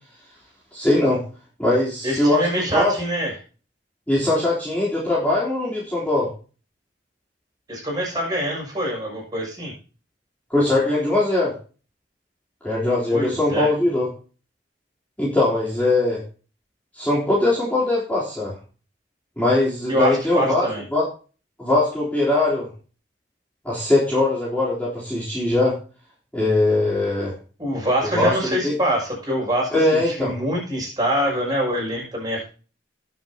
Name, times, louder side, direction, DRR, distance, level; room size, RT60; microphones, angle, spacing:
voice 1, 0.7-1.2 1.6-2.9 4.1-6.3 10.5-11.5 12.6-14.1 15.2-16.2 16.9-18.5 19.4-21.0 21.6-22.7 23.6-25.7 26.3-27.3 28.1-28.7 29.7-30.3, left 2 dB, 10° left, -7 dB, 3.7 m, -21 dB
voice 2, 2.0-3.3 7.7-9.7 13.1-13.7 19.9-20.8 27.6-32.4, equal, 20° right, -2 dB, 6.6 m, -24 dB
19.5 x 7.3 x 2.9 m, 0.37 s
head